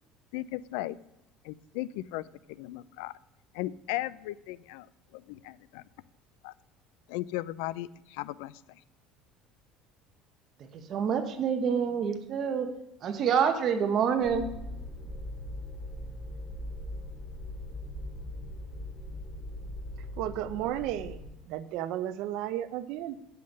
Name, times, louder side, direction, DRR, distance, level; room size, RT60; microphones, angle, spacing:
voice 1, 0.3-1.0 1.4-3.1 3.5-4.9 5.1-5.8 6.4-6.5 7.1-8.8, left 16 dB, 85° left, 19 dB, 0.3 m, -36 dB
voice 2, 10.6-12.7 13.0-14.5, right 7 dB, 40° right, 7 dB, 0.9 m, -27 dB
sound 1, 14.2-21.3, left 1 dB, 15° left, 3.0 m, -40 dB
voice 3, 20.2-21.2 21.5-23.2, right 12 dB, 65° right, 13 dB, 0.5 m, -33 dB
7.7 x 5.7 x 6.5 m, 0.92 s
cardioid pair, 155°, 0 cm